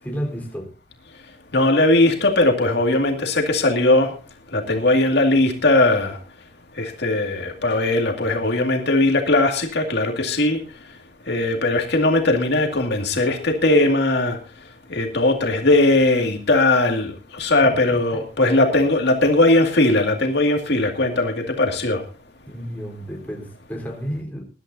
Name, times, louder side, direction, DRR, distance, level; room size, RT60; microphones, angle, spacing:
voice 1, 0.0-0.7 17.6-18.2 22.5-24.4, equal, 10° left, 0 dB, 3.9 m, -32 dB
voice 2, 1.5-4.1 4.5-6.2 6.8-10.6 11.3-14.4 14.9-22.0, left 2 dB, 65° left, 3 dB, 2.2 m, -19 dB
21.0 x 11.5 x 2.7 m, 0.35 s
head